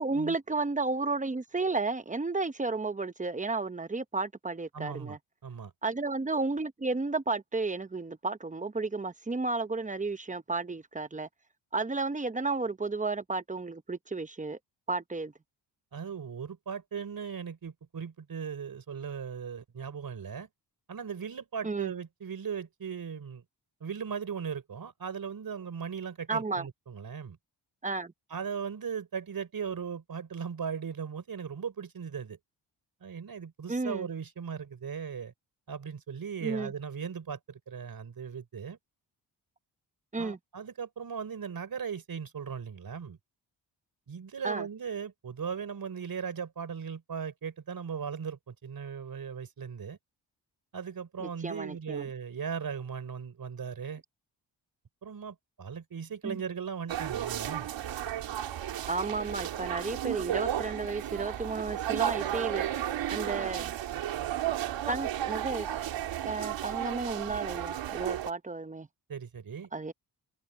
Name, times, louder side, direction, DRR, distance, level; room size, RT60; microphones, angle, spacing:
voice 1, 0.0-5.2 5.8-11.3 11.7-14.6 14.9-15.3 21.6-21.9 26.3-26.7 27.8-28.1 33.7-34.1 36.4-36.7 40.1-40.4 44.4-44.7 51.2-52.1 56.2-56.4 58.9-62.6 63.1-63.7 64.9-65.7 66.2-68.9 69.7-69.9, right 3 dB, 15° right, 0.9 m, -32 dB
voice 2, 4.7-5.2 5.4-5.7 15.9-20.5 20.9-23.4 23.8-27.4 28.3-32.4 33.0-35.3 35.7-38.8 40.2-43.2 44.1-50.0 50.7-54.0 55.0-57.7 69.1-69.7, right 6 dB, 55° right, 4.5 m, -38 dB
sound 1, 56.9-68.3, right 11 dB, 90° right, 3.3 m, -33 dB
cardioid pair, 70°, 43 cm